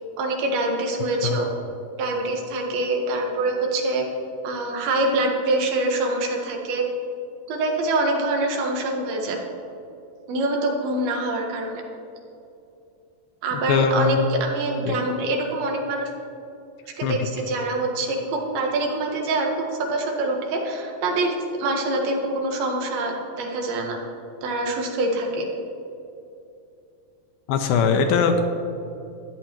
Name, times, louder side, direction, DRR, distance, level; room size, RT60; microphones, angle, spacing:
voice 1, 0.2-1.5 2.0-4.0 4.4-6.8 7.5-9.4 10.3-11.8 13.4-16.1 17.0-21.3 21.6-24.0 24.4-25.5, right 2 dB, 80° right, 1 dB, 3.1 m, -25 dB
voice 2, 13.7-14.2 14.9-15.0 17.0-17.2 27.5-28.4, left 6 dB, 80° left, 5 dB, 2.3 m, -20 dB
13.5 x 10.0 x 2.9 m, 2.7 s
omnidirectional pair, 4.4 m